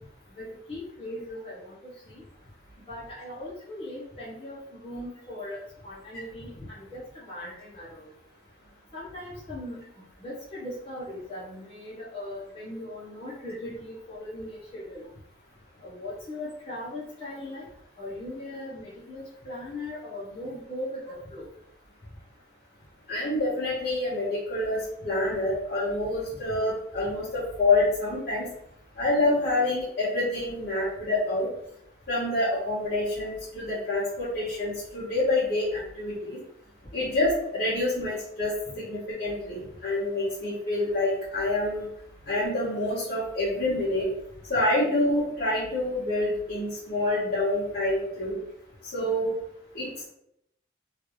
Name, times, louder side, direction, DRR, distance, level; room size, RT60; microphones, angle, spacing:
voice 1, 0.3-1.8 2.1-2.2 2.9-5.6 5.8-8.1 8.9-9.8 10.2-15.1 15.8-17.6 18.0-21.5, left 1 dB, 30° left, -10 dB, 0.9 m, -39 dB
voice 2, 23.1-24.8 25.0-28.5 29.0-31.5 32.1-36.4 36.9-38.5 38.9-41.9 42.3-44.1 44.5-48.4 48.8-49.3 49.7-50.1, left 2 dB, 50° left, -12 dB, 1.5 m, -27 dB
3.1 x 2.5 x 3.0 m, 0.76 s
head